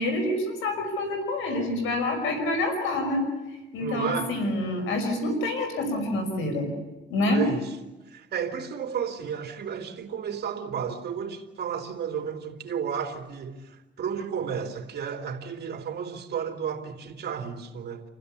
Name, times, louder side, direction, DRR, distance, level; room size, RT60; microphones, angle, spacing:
voice 1, 0.0-3.2 3.7-6.7 7.1-7.5, left 1 dB, 90° left, 5.6 m, -27 dB
voice 2, 3.8-4.4 7.3-7.7 8.1-18.0, right 7 dB, 55° right, 3.2 m, -32 dB
27.5 x 16.0 x 8.5 m
cardioid pair, 90°, 20 cm